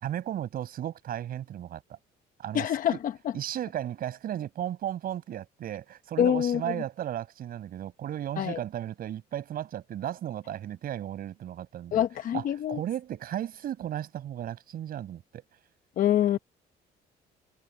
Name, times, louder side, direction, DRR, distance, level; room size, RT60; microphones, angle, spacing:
voice 1, 0.0-2.0 2.4-3.0 3.3-12.0 12.3-12.4 12.7-15.4, right 11 dB, 60° right, 5.4 m, -35 dB
voice 2, 2.5-3.3 6.2-6.8 8.4-8.6 11.9-12.8 16.0-16.4, left 10 dB, 55° left, 0.8 m, -26 dB
cardioid pair, 110°, 17 cm